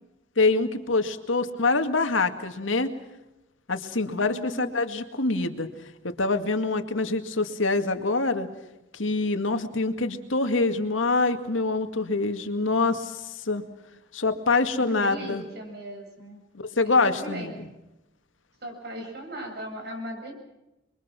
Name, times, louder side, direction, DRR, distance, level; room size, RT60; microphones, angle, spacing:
voice 1, 0.4-2.9 3.7-5.7 6.0-8.5 8.9-13.6 14.1-15.4 16.8-17.7, left 3 dB, 90° left, 8 dB, 2.2 m, -25 dB
voice 2, 4.0-4.6 14.8-16.4 16.8-17.7 18.6-20.3, equal, 55° right, 3 dB, 7.9 m, -38 dB
29.0 x 23.0 x 6.1 m, 0.97 s
head